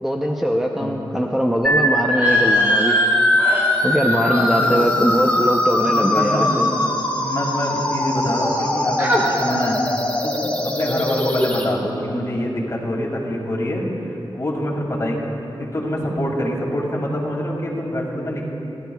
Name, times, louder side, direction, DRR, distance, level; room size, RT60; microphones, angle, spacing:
voice 1, 0.0-3.0 3.8-6.8, equal, 5° right, -1 dB, 0.7 m, -21 dB
sound 1, 1.6-11.6, left 1 dB, 15° left, 1.5 m, -21 dB
sound 2, 2.1-7.7 8.0-8.7 9.0-9.3, equal, 25° right, 2.2 m, -29 dB
voice 2, 4.3-4.9 5.8-6.6 7.1-9.8 10.2-18.4, left 1 dB, 35° left, -2 dB, 2.5 m, -25 dB
29.5 x 12.0 x 2.3 m, 3.0 s
wide cardioid pair, 125°, 9 cm